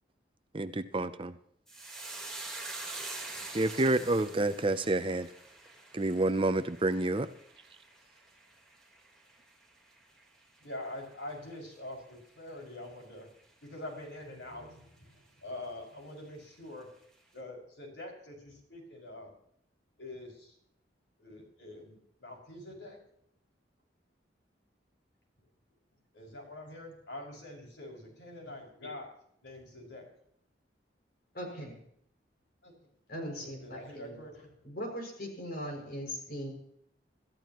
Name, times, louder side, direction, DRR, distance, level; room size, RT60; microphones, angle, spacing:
voice 1, 0.5-1.3 3.5-5.3 5.9-7.3, right 2 dB, 30° right, 11 dB, 0.6 m, -28 dB
sound 1, 1.7-10.3 10.6-11.2 11.5-11.8, right 2 dB, 5° left, 3.7 m, -45 dB
voice 2, 10.6-13.3 13.6-16.9 17.3-19.3 20.0-20.6 21.2-23.0 26.1-29.1 29.4-30.1 32.6-32.7 33.4-34.5 35.7-35.8, left 1 dB, 75° left, 0 dB, 6.2 m, -45 dB
voice 3, 31.3-31.8 33.1-34.2 34.6-36.5, equal, 55° left, 1 dB, 6.3 m, -39 dB
26.5 x 14.0 x 3.0 m, 0.68 s
head